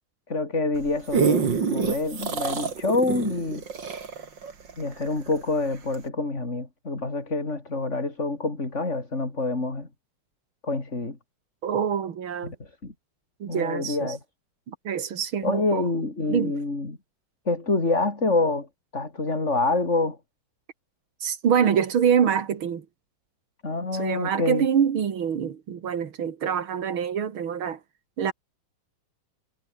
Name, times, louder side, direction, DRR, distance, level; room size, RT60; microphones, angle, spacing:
voice 1, 0.3-3.6 4.8-9.9 10.6-11.2 12.4-12.9 13.5-14.2 15.4-17.0 17.5-18.7 18.9-20.2 23.6-24.7, left 3 dB, 35° left, 4.3 m, -27 dB
sound 1, 0.8-5.4 5.9-6.0, right 5 dB, 60° right, 3.1 m, -26 dB
voice 2, 11.6-12.5 13.4-14.1 14.7-15.9 16.3-16.6 21.2-22.9 23.9-27.8 28.2-28.3, right 8 dB, 85° right, 2.7 m, -25 dB
omnidirectional pair, 2.2 m